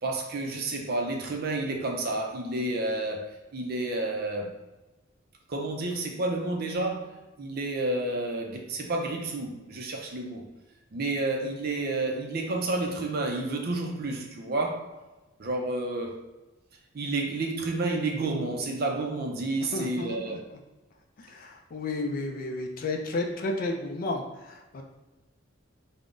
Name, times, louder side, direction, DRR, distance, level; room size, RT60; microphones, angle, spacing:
voice 1, 0.0-4.5 5.5-10.5 10.9-15.0 15.4-16.2 16.9-20.4, right 2 dB, 50° right, 2 dB, 0.4 m, -30 dB
voice 2, 19.7-20.4 21.2-24.8, left 2 dB, 45° left, 2 dB, 0.3 m, -32 dB
3.6 x 2.0 x 2.4 m, 1.1 s
head